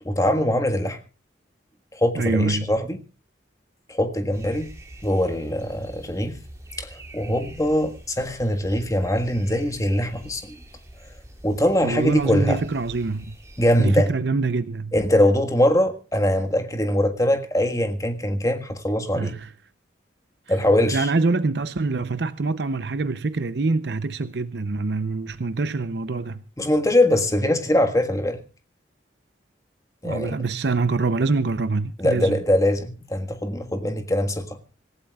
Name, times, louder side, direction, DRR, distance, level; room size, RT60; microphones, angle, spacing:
voice 1, 0.0-1.0 1.9-3.0 3.9-4.7 5.0-6.4 6.8-10.4 11.4-12.6 13.6-14.1 14.9-19.4 20.5-21.1 26.6-28.4 30.0-30.4 32.0-34.6, left 1 dB, 15° left, 1.5 m, -22 dB
voice 2, 2.1-2.7 11.8-13.3 13.8-14.9 19.1-19.5 20.5-20.6 20.9-26.4 30.0-32.4, right 3 dB, 65° right, 0.6 m, -25 dB
sound 1, 4.3-14.0, right 1 dB, 15° right, 4.2 m, -45 dB
26.5 x 15.0 x 2.3 m
head